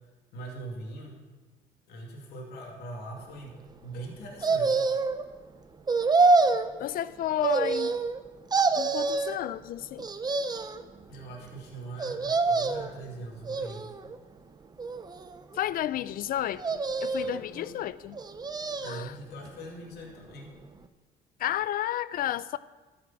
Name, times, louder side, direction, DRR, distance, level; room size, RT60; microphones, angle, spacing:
voice 1, 0.3-1.2 1.9-4.9 11.1-13.8 17.2-17.8 18.8-20.5, right 2 dB, 75° left, -1 dB, 2.6 m, -42 dB
sound 1, 4.4-5.2 5.9-6.7 7.4-8.2 8.5-9.4 10.0-10.8 12.0-12.9 13.5-14.2 14.8-15.6 16.6-17.4 18.1-19.1 19.5-19.6, right 4 dB, 25° right, 0.8 m, -26 dB
voice 2, 6.8-8.0 8.8-10.1 15.5-18.2 18.8-19.1 21.4-22.6, left 12 dB, 60° left, 18 dB, 0.5 m, -32 dB
12.5 x 7.1 x 7.3 m, 1.3 s
cardioid pair, 110°, 17 cm